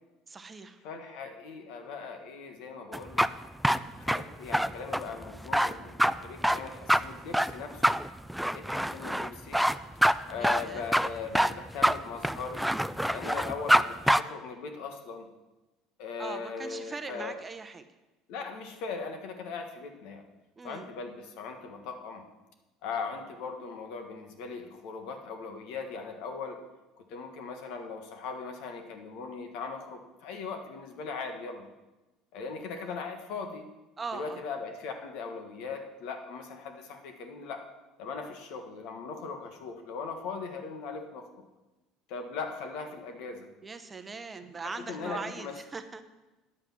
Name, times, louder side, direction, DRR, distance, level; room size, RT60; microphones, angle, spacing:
voice 1, 0.3-0.8 10.4-10.9 11.3-11.5 16.2-17.8 20.6-20.9 32.8-32.9 34.0-34.4 43.6-46.0, right 4 dB, 25° right, 9 dB, 0.8 m, -40 dB
voice 2, 0.8-3.3 4.0-7.9 8.5-9.6 10.3-12.7 13.1-15.3 16.0-17.4 18.3-20.2 20.6-22.2 22.8-26.6 27.1-31.7 32.3-33.7 34.1-37.6 38.0-41.3 42.1-43.5 44.6-45.5, left 5 dB, 70° left, 5 dB, 1.5 m, -39 dB
sound 1, 2.9-13.8 14.1-14.2, equal, ahead, 0.3 m, -25 dB
9.7 x 7.8 x 6.0 m, 1.1 s
supercardioid pair, 95°, 0 cm